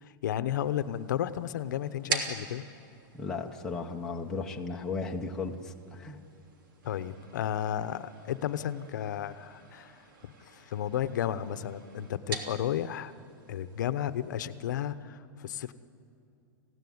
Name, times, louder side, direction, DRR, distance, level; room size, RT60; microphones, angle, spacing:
voice 1, 0.0-2.6 6.8-10.0 10.4-13.1 13.5-15.7, left 10 dB, 60° left, 13 dB, 0.8 m, -33 dB
sound 1, 0.6-14.9, right 4 dB, 75° right, 3.1 m, -44 dB
voice 2, 3.1-6.2, left 4 dB, 5° left, -1 dB, 0.7 m, -35 dB
26.0 x 16.5 x 9.6 m, 2.6 s
supercardioid pair, 180°, 11 cm